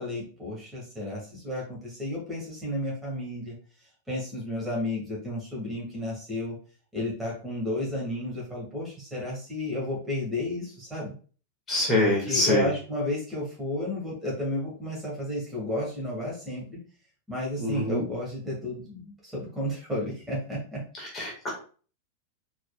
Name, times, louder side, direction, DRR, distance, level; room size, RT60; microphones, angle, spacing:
voice 1, 0.0-3.6 4.1-6.6 6.9-11.1 12.0-16.8 17.3-20.8, left 1 dB, 5° right, -5 dB, 2.2 m, -32 dB
voice 2, 11.7-12.7 17.6-18.0 21.1-21.5, left 2 dB, 20° left, -4 dB, 2.0 m, -24 dB
4.5 x 4.4 x 2.5 m, 0.40 s
figure-of-eight pair, 90°, 0 cm